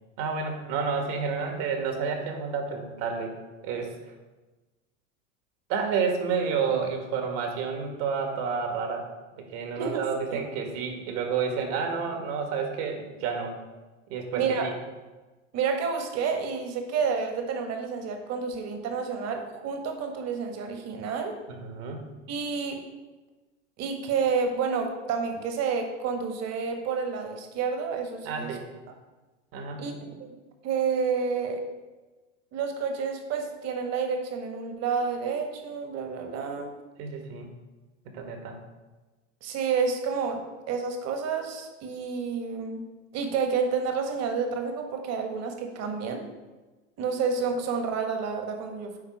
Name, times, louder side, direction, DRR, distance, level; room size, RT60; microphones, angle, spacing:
voice 1, 0.2-3.3 3.6-4.1 5.7-9.1 9.4-13.6 14.1-14.7 21.5-22.1 28.2-28.6 29.5-29.9 37.0-37.5 38.0-38.6, right 5 dB, 60° right, 4 dB, 1.7 m, -30 dB
voice 2, 9.7-10.4 14.4-14.7 15.5-21.3 22.3-22.8 23.8-28.5 29.8-29.9 30.2-30.4 30.6-31.6 32.5-36.7 39.4-42.8 43.1-46.3 47.0-49.0, right 5 dB, 40° right, 4 dB, 1.4 m, -29 dB
9.3 x 3.6 x 4.8 m, 1.2 s
hypercardioid pair, 105°, 38 cm